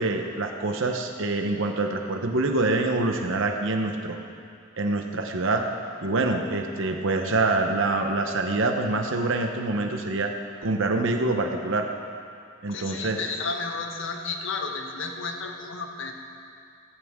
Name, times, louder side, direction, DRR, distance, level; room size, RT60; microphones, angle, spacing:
voice 1, 0.0-4.2 4.8-5.7 6.0-10.3 10.6-11.9 12.6-13.3, right 2 dB, 70° right, 4 dB, 0.9 m, -25 dB
voice 2, 12.7-16.2, left 4 dB, 65° left, 3 dB, 1.3 m, -32 dB
15.0 x 14.5 x 3.7 m, 2.5 s
head